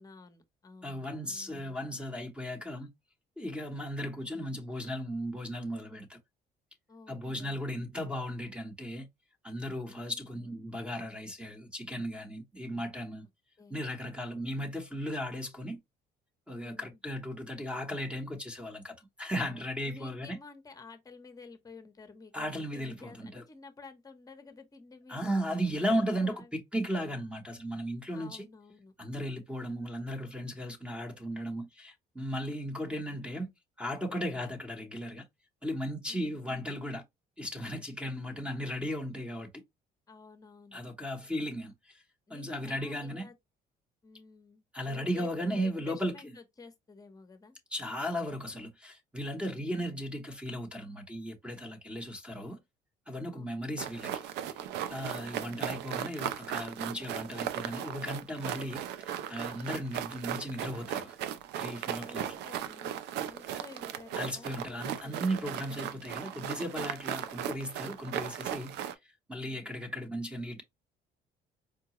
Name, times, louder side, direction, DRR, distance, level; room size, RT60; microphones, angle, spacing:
voice 1, 0.0-1.7 6.9-7.9 9.9-10.4 13.6-13.8 16.5-17.0 19.5-25.4 26.2-26.5 28.1-28.9 34.3-34.6 36.1-36.4 38.0-38.5 40.1-40.8 42.3-43.3 44.0-47.6 53.3-53.8 55.1-55.7 62.0-66.1 69.4-69.9, left 4 dB, 20° left, 0.8 m, -53 dB
voice 2, 0.8-2.9 3.4-6.2 7.1-9.1 9.4-13.2 13.7-15.8 16.5-20.4 22.3-23.4 25.1-28.4 29.0-33.5 33.8-35.2 35.6-37.0 37.4-39.5 40.7-42.0 42.3-43.3 44.7-46.3 47.7-52.6 53.1-54.6 54.9-61.2 61.6-62.3 64.1-68.7 69.3-70.6, equal, 5° right, 0.9 m, -36 dB
sound 1, 53.8-68.9, right 10 dB, 80° right, 0.5 m, -37 dB
4.7 x 2.2 x 2.9 m
cardioid pair, 110°, 17 cm